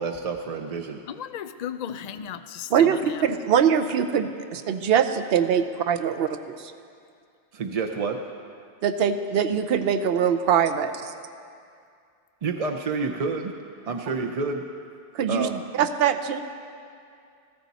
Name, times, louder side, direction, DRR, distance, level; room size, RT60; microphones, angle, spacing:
voice 1, 0.0-1.0 1.9-2.0 7.5-8.2 12.4-13.5 13.9-14.6 15.3-15.6, right 4 dB, 45° right, 4 dB, 0.5 m, -28 dB
voice 2, 1.1-3.3, left 9 dB, 55° left, 11 dB, 0.4 m, -35 dB
voice 3, 2.7-6.3 8.8-10.9 15.1-15.5 15.7-16.4, right 8 dB, 65° right, 9 dB, 0.8 m, -22 dB
15.0 x 13.5 x 4.1 m, 2.4 s
omnidirectional pair, 1.2 m